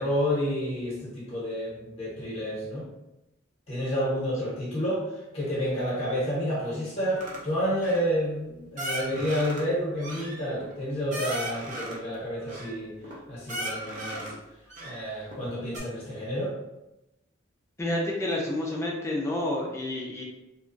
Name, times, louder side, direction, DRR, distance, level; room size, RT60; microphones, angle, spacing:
voice 1, 0.0-2.9 3.7-5.0 5.3-12.9 13.3-14.3 14.8-16.5, equal, 30° left, -7 dB, 0.9 m, -29 dB
sound 1, 7.2-7.4 7.8-8.2 8.8-9.6 10.0-12.0 12.5-13.1 13.5-14.4 14.7-15.4 15.7-15.8, right 1 dB, 40° right, 0.6 m, -36 dB
voice 2, 17.8-20.2, left 1 dB, 15° left, -2 dB, 0.4 m, -29 dB
2.9 x 2.3 x 2.5 m, 0.94 s
head